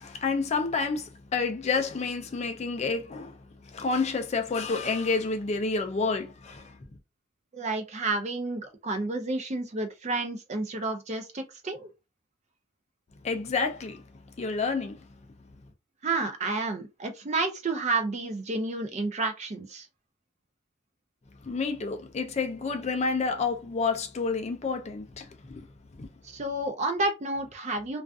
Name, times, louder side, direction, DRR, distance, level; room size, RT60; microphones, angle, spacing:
voice 1, 0.0-6.8 13.2-14.0 14.4-15.0 21.4-25.6 26.0-26.1, left 4 dB, 30° left, 0.4 m, -29 dB
voice 2, 7.5-11.9 16.0-19.9 26.2-28.0, right 3 dB, 35° right, 0.4 m, -30 dB
2.4 x 2.3 x 2.3 m
head